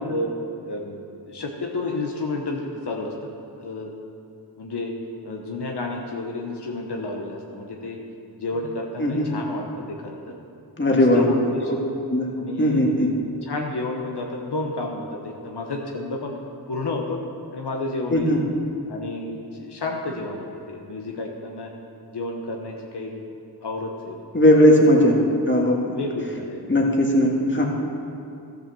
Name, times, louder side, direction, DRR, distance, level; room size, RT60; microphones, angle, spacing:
voice 1, 0.6-3.3 3.6-3.9 4.6-4.9 5.2-8.0 8.4-10.2 10.9-11.7 12.3-13.1 13.4-16.4 16.7-17.2 17.5-18.4 18.9-21.7 22.1-23.2 23.6-24.2 25.0-25.1 25.9-26.6, left 2 dB, 75° left, 0 dB, 1.1 m, -31 dB
voice 2, 10.8-11.3 12.1-12.3 12.6-13.1 18.1-18.4 24.3-25.2 25.5-26.0 26.7-27.7, left 1 dB, 30° left, -1 dB, 1.8 m, -18 dB
13.0 x 6.6 x 6.9 m, 2.6 s
wide cardioid pair, 60°, 40 cm